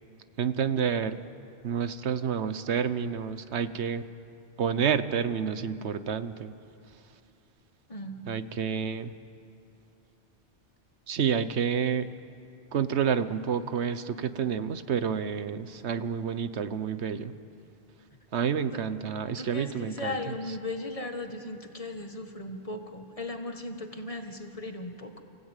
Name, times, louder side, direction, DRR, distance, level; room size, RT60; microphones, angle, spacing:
voice 1, 0.4-1.2 1.6-4.1 4.6-6.5 8.3-9.1 11.1-12.1 12.7-17.3 18.3-20.2, right 7 dB, 90° right, 12 dB, 1.2 m, -29 dB
voice 2, 7.9-8.4 18.7-18.8 19.4-25.2, left 2 dB, 35° left, 5 dB, 1.7 m, -37 dB
29.5 x 16.0 x 9.0 m, 2.6 s
omnidirectional pair, 1.1 m